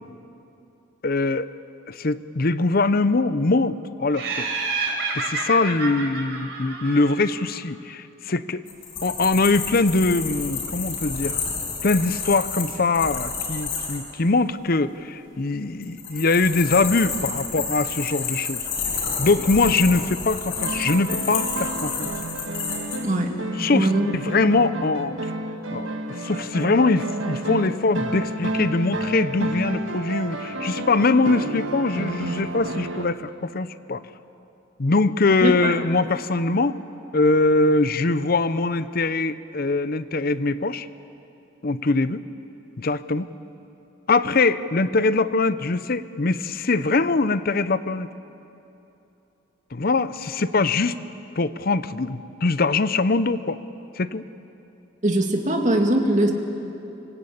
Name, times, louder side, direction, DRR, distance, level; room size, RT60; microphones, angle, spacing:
voice 1, 1.0-1.5 1.9-4.6 5.1-8.6 9.0-11.4 11.8-18.6 19.2-22.1 23.6-25.3 25.7-34.0 34.8-36.8 37.1-40.9 41.6-42.2 42.8-43.3 44.1-48.1 49.7-51.0 51.4-53.6 54.0-54.2, left 3 dB, 50° left, 14 dB, 0.7 m, -22 dB
Laughter, 4.1-7.5, right 4 dB, 65° right, 4.1 m, -29 dB
sound 1, 8.7-14.0 15.8-23.0, left 5 dB, 85° left, 6.1 m, -30 dB
sound 2, 20.6-33.1, right 1 dB, 85° right, 1.6 m, -30 dB
voice 2, 23.0-23.4 23.7-24.1 35.4-35.7 55.0-56.3, right 1 dB, 40° right, 3 dB, 2.3 m, -21 dB
25.0 x 20.0 x 8.7 m, 2.8 s
head